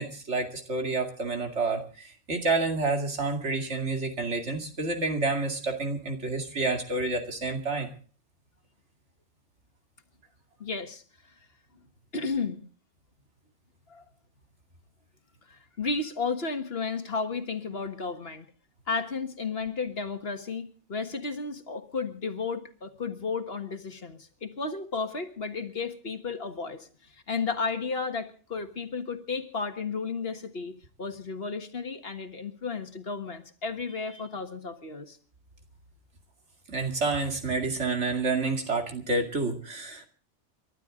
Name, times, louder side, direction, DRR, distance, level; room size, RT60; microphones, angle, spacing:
voice 1, 0.0-7.9 36.7-40.1, right 3 dB, 65° right, 4 dB, 2.7 m, -29 dB
voice 2, 10.6-11.0 12.1-12.6 13.9-14.0 15.5-18.5 18.9-26.9 27.3-35.2, left 4 dB, 55° left, 7 dB, 1.8 m, -33 dB
29.0 x 12.0 x 3.8 m, 0.41 s
omnidirectional pair, 1.3 m